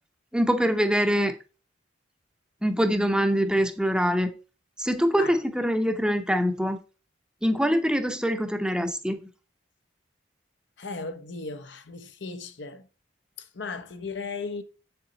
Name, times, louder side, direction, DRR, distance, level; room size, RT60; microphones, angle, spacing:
voice 1, 0.3-1.3 2.6-4.3 4.8-6.8 7.4-9.2, equal, 5° right, 0.8 m, -24 dB
voice 2, 10.8-12.9 13.4-14.6, left 4 dB, 65° left, 0.9 m, -36 dB
7.8 x 6.9 x 4.0 m
head